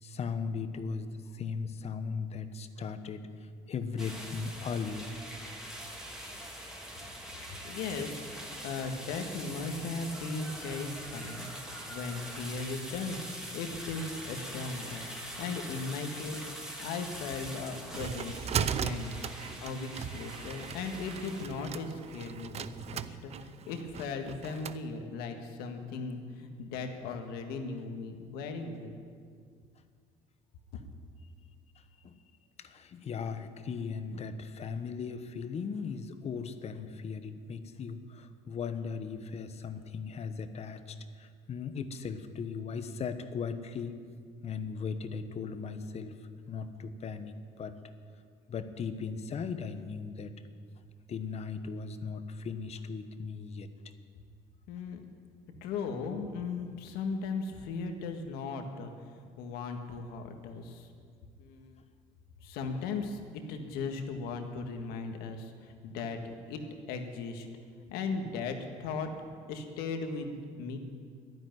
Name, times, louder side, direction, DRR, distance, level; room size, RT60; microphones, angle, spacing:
voice 1, 0.0-5.1 17.9-18.0 19.2-19.3 31.7-32.2 32.6-44.0 44.4-47.8 48.5-50.3 51.1-53.7, left 5 dB, 45° left, 10 dB, 1.1 m, -38 dB
sound 1, 4.0-21.5, equal, 5° right, 2.8 m, -43 dB
voice 2, 7.6-8.2 8.6-13.3 13.5-15.0 15.4-16.5 16.8-19.1 19.4-29.0 54.7-55.0 55.6-60.9 61.4-61.8 62.4-66.6 66.9-67.5 67.9-69.1 69.5-70.8, left 4 dB, 85° left, 5 dB, 1.7 m, -37 dB
sound 2, 17.4-24.8, right 8 dB, 40° right, 0.6 m, -38 dB
11.5 x 11.0 x 9.3 m, 2.1 s
cardioid pair, 105°, 16 cm